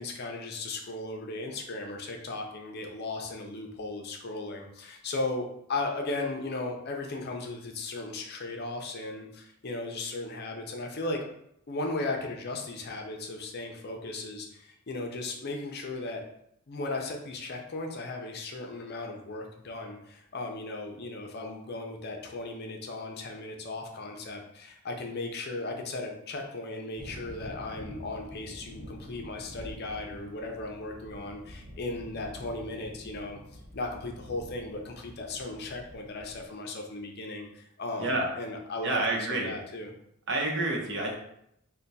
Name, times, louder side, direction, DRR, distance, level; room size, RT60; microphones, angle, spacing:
voice 1, 0.0-11.2 11.7-16.2 16.7-33.4 33.7-39.0 39.3-39.9, left 2 dB, 50° left, 2 dB, 0.5 m, -36 dB
sound 1, 27.0-36.4, equal, 40° right, 1.3 m, -47 dB
voice 2, 38.8-39.5 40.3-41.2, right 2 dB, 55° right, 0 dB, 0.8 m, -28 dB
3.3 x 2.2 x 4.0 m, 0.74 s
head